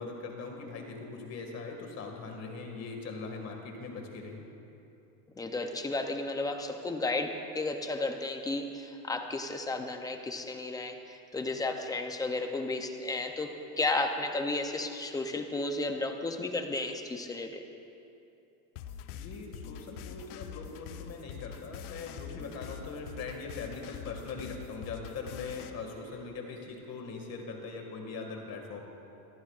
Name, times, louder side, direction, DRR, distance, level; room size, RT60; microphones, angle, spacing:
voice 1, 0.0-4.5 19.1-28.8, left 4 dB, 35° left, 2 dB, 2.0 m, -41 dB
voice 2, 5.4-17.6, left 2 dB, 10° left, 5 dB, 0.5 m, -33 dB
sound 1, 18.8-25.7, left 8 dB, 70° left, 0.9 m, -44 dB
23.5 x 13.5 x 2.4 m, 2.8 s
supercardioid pair, 140°, 46 cm